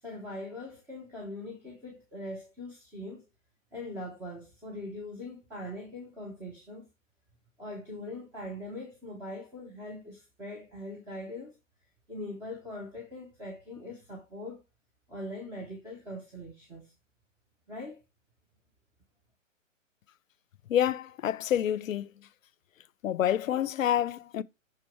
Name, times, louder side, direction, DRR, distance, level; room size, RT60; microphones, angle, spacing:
voice 1, 0.0-3.2 3.7-6.9 7.6-11.6 12.1-14.6 15.1-16.9 17.7-18.0, left 1 dB, 5° right, 0.8 m, -41 dB
voice 2, 20.7-22.3 23.0-24.4, left 10 dB, 80° left, 0.6 m, -28 dB
6.0 x 4.4 x 4.3 m
hypercardioid pair, 145°, 39 cm